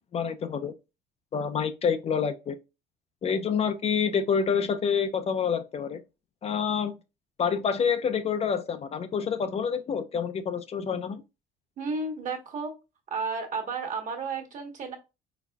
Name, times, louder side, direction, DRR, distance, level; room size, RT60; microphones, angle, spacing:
voice 1, 0.1-0.7 1.3-2.6 3.2-6.0 6.4-6.9 7.4-11.2, left 6 dB, 40° left, 0.4 m, -27 dB
voice 2, 11.8-12.7 13.1-15.0, right 4 dB, 50° right, 1.3 m, -32 dB
4.2 x 4.0 x 2.3 m
cardioid pair, 110°, 17 cm